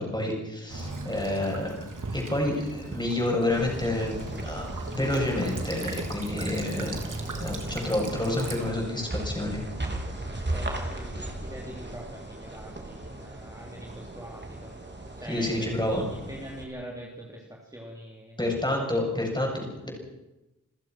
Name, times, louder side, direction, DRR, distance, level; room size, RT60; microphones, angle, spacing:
voice 1, 0.0-1.7 2.1-7.0 7.4-9.6 15.3-16.1 18.4-19.9, left 1 dB, 15° left, 0 dB, 7.5 m, -29 dB
Child speech kid speaking / Bird vocalization bird call bird song / Stream, 0.7-8.7, right 3 dB, 70° right, 3.4 m, -38 dB
sound 1, 3.5-16.6, right 1 dB, 35° right, 3.8 m, -37 dB
voice 2, 10.5-14.7 15.2-18.4, equal, 10° right, -2 dB, 3.5 m, -43 dB
28.5 x 15.0 x 6.1 m, 0.97 s
wide cardioid pair, 100°, 33 cm